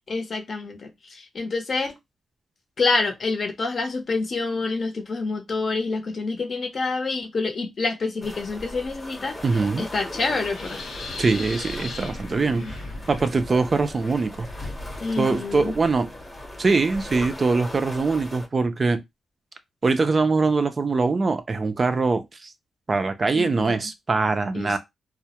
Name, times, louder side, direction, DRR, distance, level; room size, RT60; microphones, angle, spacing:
voice 1, 0.1-1.9 2.8-9.3 9.8-10.8 12.3-12.7 15.0-15.7 23.3-23.9 24.5-24.8, left 3 dB, 50° left, 0.6 m, -27 dB
sound 1, 8.2-18.5, left 1 dB, 10° left, 0.8 m, -40 dB
Wind, 8.3-18.4, left 2 dB, 80° left, 0.8 m, -39 dB
voice 2, 9.4-9.8 11.2-14.5 15.2-16.1 16.6-19.0 19.8-22.5 22.9-24.8, right 3 dB, 40° right, 0.4 m, -23 dB
2.2 x 2.0 x 2.8 m
cardioid pair, 90°, 0 cm